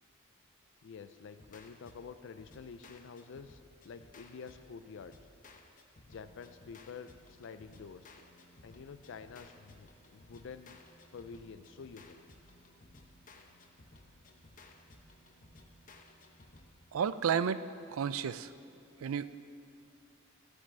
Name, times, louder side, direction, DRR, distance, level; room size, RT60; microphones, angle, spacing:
voice 1, 0.8-3.6 3.8-5.1 6.0-8.1 8.6-10.8 11.1-12.2, left 5 dB, 65° left, 10 dB, 0.4 m, -48 dB
sound 1, 1.4-16.7, left 2 dB, 40° left, 0.9 m, -58 dB
voice 2, 16.9-17.6 17.9-18.5 19.0-19.3, right 7 dB, 80° right, 14 dB, 0.4 m, -31 dB
14.5 x 5.4 x 7.4 m, 2.5 s
head